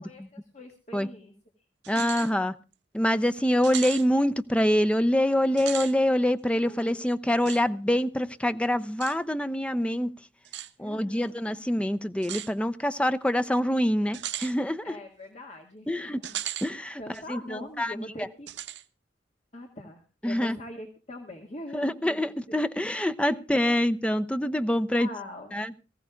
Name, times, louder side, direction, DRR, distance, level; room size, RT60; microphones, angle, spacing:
voice 1, 0.0-1.3 1.9-2.3 6.6-7.0 10.8-11.3 14.8-16.3 17.0-18.5 19.5-22.6 22.9-23.8 24.9-25.5, left 1 dB, 40° left, 2 dB, 1.8 m, -43 dB
sound 1, 1.8-2.3 2.7-2.8 3.6-4.1 5.5-5.9 7.4-7.6 9.0-9.2 10.4-10.7 12.2-12.5 14.1-14.5 16.2-16.7 17.1-17.2 18.5-18.8, right 11 dB, 80° right, 0.9 m, -36 dB
voice 2, 1.9-2.5 2.9-10.1 10.8-15.0 15.9-16.2 16.6-17.0 17.3-17.4 17.8-17.9 20.2-20.6 21.7-25.1 25.5-25.7, equal, 5° left, 12 dB, 0.6 m, -25 dB
23.0 x 14.5 x 2.3 m, 0.31 s
head